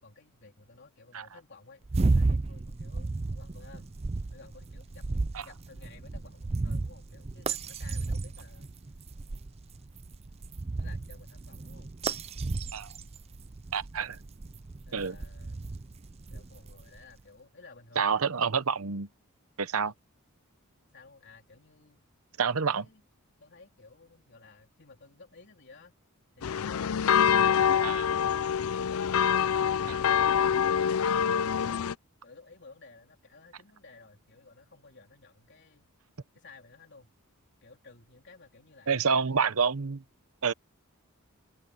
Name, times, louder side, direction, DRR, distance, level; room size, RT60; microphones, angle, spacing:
voice 1, 0.0-3.9 4.3-8.7 10.8-11.9 14.8-15.6 16.3-18.6 19.8-19.9 20.9-22.0 22.6-23.0 23.4-25.9 32.2-35.9 36.3-37.1 37.6-39.5, left 3 dB, 50° left, 3.8 m, -54 dB
sound 1, 1.8-17.0, right 3 dB, 30° right, 0.5 m, -33 dB
voice 2, 13.7-14.2 14.9-15.2 18.0-19.1 19.6-19.9 22.4-22.8 27.8-28.0 38.9-40.0 40.4-40.5, right 5 dB, 75° right, 0.9 m, -28 dB
sound 2, 26.4-31.9, left 8 dB, 70° left, 0.5 m, -25 dB
head